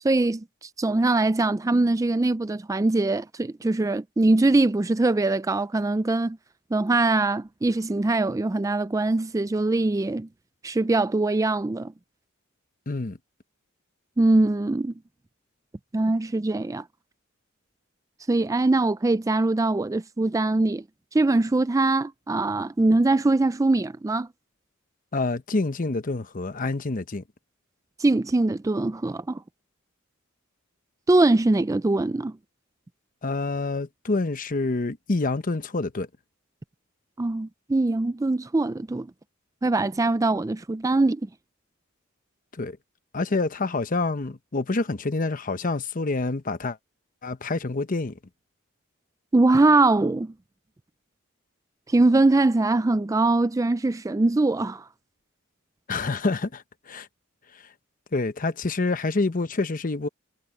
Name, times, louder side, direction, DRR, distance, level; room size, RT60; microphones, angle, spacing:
voice 1, 0.0-0.4 0.8-6.4 6.7-10.3 10.6-11.9 14.2-14.9 15.9-16.8 18.3-20.8 21.1-24.3 28.0-29.4 31.1-32.3 37.2-39.1 39.6-41.2 49.3-50.3 51.9-54.8, right 2 dB, 15° right, 0.4 m, -22 dB
voice 2, 12.9-13.2 25.1-27.2 33.2-36.1 42.5-42.8 43.1-46.8 47.2-48.2 55.9-57.1 57.5-57.6 58.1-60.1, left 3 dB, 40° left, 0.9 m, -27 dB
head